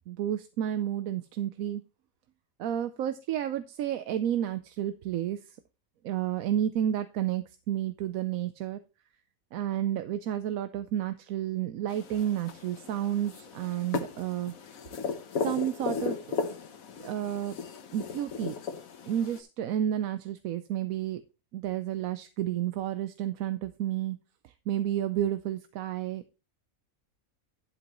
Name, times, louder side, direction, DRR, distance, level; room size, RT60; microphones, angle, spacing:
voice 1, 0.1-1.8 2.6-5.6 6.0-8.8 9.5-14.5 15.4-16.2 17.0-17.6 17.9-18.5 19.1-21.2 21.5-24.2 24.4-26.2, right 11 dB, 80° right, 11 dB, 1.1 m, -31 dB
sound 1, 11.9-19.4, left 5 dB, 75° left, 1.4 m, -36 dB
11.0 x 7.9 x 3.0 m, 0.31 s
omnidirectional pair, 1.5 m